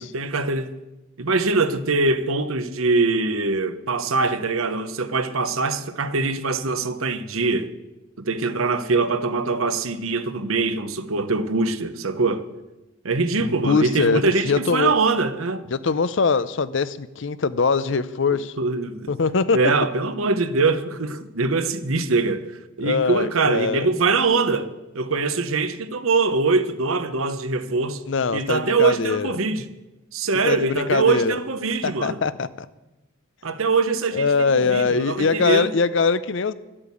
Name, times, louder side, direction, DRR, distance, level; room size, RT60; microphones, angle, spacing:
voice 1, 0.1-0.7 1.2-7.7 8.2-12.5 13.0-15.6 18.6-19.1 19.5-22.5 22.8-28.0 28.3-29.7 30.1-32.2 33.4-34.3 34.5-35.7, right 3 dB, 80° right, 0.9 m, -23 dB
voice 2, 13.4-14.9 15.7-18.5 19.1-19.7 22.8-23.9 28.1-29.3 30.4-31.4 31.8-32.7 34.1-36.5, left 4 dB, 60° left, 0.6 m, -22 dB
12.5 x 8.7 x 8.4 m
head